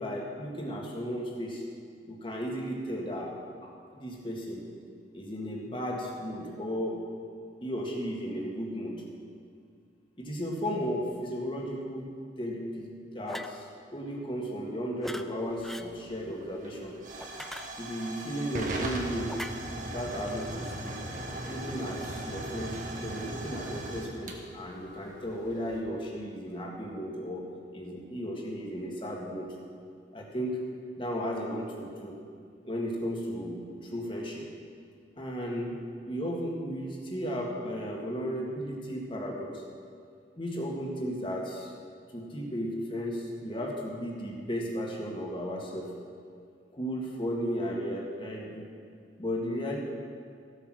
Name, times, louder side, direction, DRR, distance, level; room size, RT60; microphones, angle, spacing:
voice 1, 0.0-1.6 2.1-4.7 5.1-7.0 7.6-9.1 10.2-12.1 12.4-17.0 17.8-19.4 19.8-21.0 21.5-27.5 27.7-29.5 30.1-30.6 31.0-32.2 32.6-34.5 35.2-35.8 36.1-39.6 40.4-41.7 42.1-46.0 46.7-48.7 49.2-49.8, equal, 25° left, -1 dB, 1.8 m, -35 dB
sound 1, 13.3-13.6 15.0-15.3 15.6-15.9 17.2-18.1 19.3-19.5, equal, ahead, 0.3 m, -40 dB
Hiss / Fire / Tick, 15.4-25.8, right 1 dB, 45° right, 1.5 m, -39 dB
15.5 x 8.2 x 6.3 m, 2.2 s
head